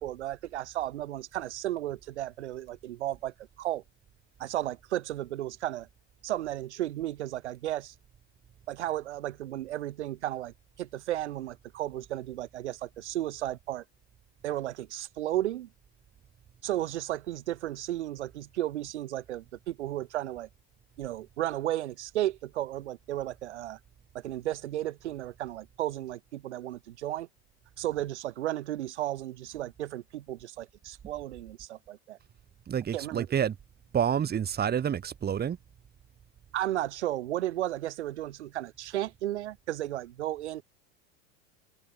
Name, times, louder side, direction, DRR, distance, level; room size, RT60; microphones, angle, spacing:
voice 1, 0.0-3.8 4.4-5.9 6.2-7.9 8.7-13.8 14.4-15.7 16.6-20.5 21.0-23.8 24.1-27.3 27.8-32.2 32.9-33.3 36.5-40.6, right 13 dB, 85° right, 6.4 m, -34 dB
voice 2, 32.7-33.5 33.9-35.6, right 8 dB, 30° right, 4.3 m, -28 dB
supercardioid pair, 110°, 33 cm